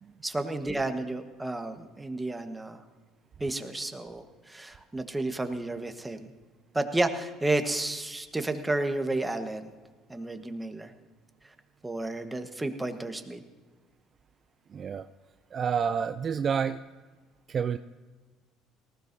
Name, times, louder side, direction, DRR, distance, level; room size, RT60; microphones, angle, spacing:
voice 1, 0.2-2.8 3.4-6.3 6.7-9.7 10.1-10.9 11.8-13.4, right 2 dB, 15° right, 7 dB, 1.3 m, -31 dB
voice 2, 14.7-15.1 15.5-16.8 17.5-17.8, right 7 dB, 45° right, 11 dB, 0.4 m, -29 dB
19.0 x 15.5 x 2.7 m, 1.3 s
hypercardioid pair, 70°, 0 cm